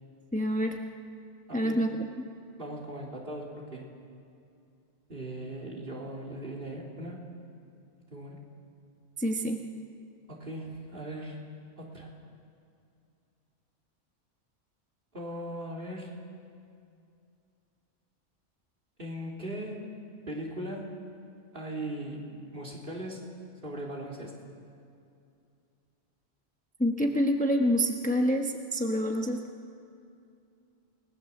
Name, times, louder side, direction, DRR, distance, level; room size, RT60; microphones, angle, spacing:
voice 1, 0.3-0.8 1.5-2.1 9.2-9.6 26.8-29.4, equal, 5° left, 2 dB, 1.2 m, -27 dB
voice 2, 1.5-1.8 2.6-3.9 5.1-7.2 8.1-8.4 10.3-11.4 11.8-12.1 15.1-16.2 19.0-19.8 20.3-21.0 21.5-23.3 23.6-24.4, right 1 dB, 50° right, -1 dB, 3.6 m, -39 dB
28.5 x 19.5 x 7.2 m, 2.5 s
omnidirectional pair, 1.2 m